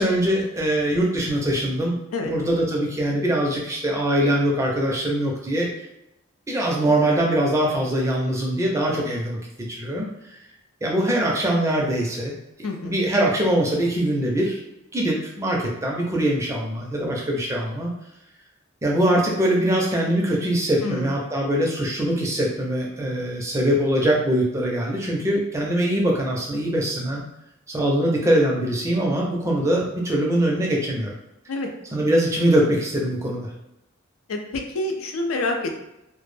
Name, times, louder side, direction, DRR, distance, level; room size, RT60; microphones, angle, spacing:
voice 1, 0.0-1.9 2.2-5.7 6.5-9.4 9.7-10.1 10.8-12.3 12.8-14.6 14.9-17.9 18.8-27.2 27.7-31.1 31.9-33.5, right 1 dB, 15° right, -2 dB, 0.4 m, -22 dB
voice 2, 12.6-13.0 20.8-21.1 31.5-31.7 34.3-35.7, left 2 dB, 90° left, 4 dB, 0.4 m, -27 dB
2.1 x 2.0 x 3.1 m, 0.88 s
head